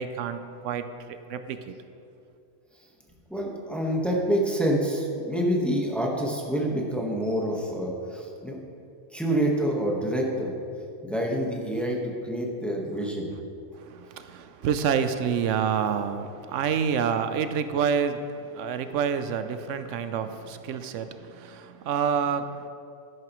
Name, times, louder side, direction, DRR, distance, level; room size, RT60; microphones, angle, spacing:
voice 1, 0.0-1.7 13.8-22.7, right 7 dB, 85° right, 10 dB, 0.9 m, -28 dB
voice 2, 3.3-8.6 9.1-10.5 11.0-12.0 12.2-13.3, right 1 dB, ahead, -1 dB, 1.2 m, -27 dB
12.5 x 10.5 x 3.1 m, 2.6 s
omnidirectional pair, 1.2 m